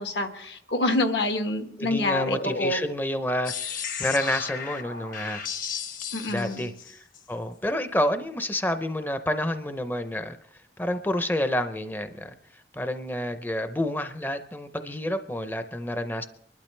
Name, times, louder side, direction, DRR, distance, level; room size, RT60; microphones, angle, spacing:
voice 1, 0.0-2.8 6.1-6.7, left 2 dB, 80° left, 6 dB, 1.4 m, -27 dB
voice 2, 1.8-5.4 6.3-16.3, left 1 dB, 10° left, 9 dB, 0.5 m, -29 dB
sound 1, 3.5-7.2, left 7 dB, 50° left, 1.0 m, -34 dB
24.5 x 12.0 x 3.2 m, 0.75 s
head